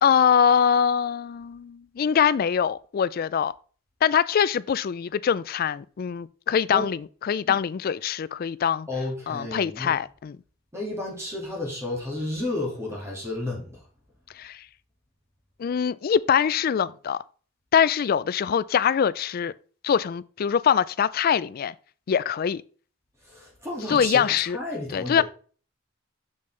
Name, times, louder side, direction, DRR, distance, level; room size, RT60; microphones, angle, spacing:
voice 1, 0.0-3.5 4.0-8.9 9.3-10.4 14.4-14.6 15.6-17.2 17.7-19.5 19.8-21.7 22.1-22.6 23.9-24.6 24.9-25.2, left 7 dB, 45° left, 0.3 m, -23 dB
voice 2, 8.9-10.0 10.7-13.8 23.3-25.2, left 2 dB, 15° right, 2.2 m, -32 dB
6.9 x 6.6 x 3.3 m
head